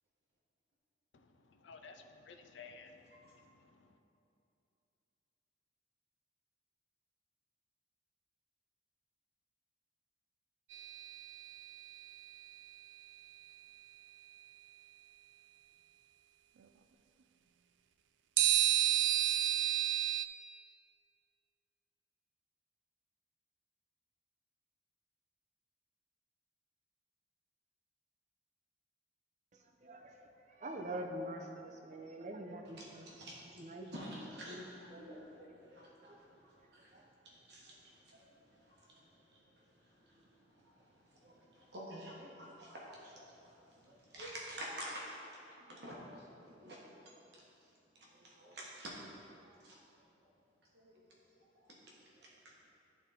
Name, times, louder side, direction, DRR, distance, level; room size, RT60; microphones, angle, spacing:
voice 1, 1.1-3.9, left 4 dB, 80° left, 5 dB, 0.5 m, -56 dB
sound 1, 10.7-12.0 18.4-20.3, right 14 dB, 85° right, 0.3 m, -31 dB
voice 2, 29.8-30.2 30.5-33.1 33.5-33.9 34.5-34.7 34.9-35.1 36.1-36.2 36.8-37.1, right 1 dB, 40° right, 3 dB, 0.6 m, -45 dB
voice 3, 33.9-46.8 47.9-48.9 49.4-49.8 50.7-51.0 51.5-52.7, equal, 65° right, -4 dB, 1.3 m, -50 dB
11.0 x 3.8 x 4.2 m, 2.8 s
head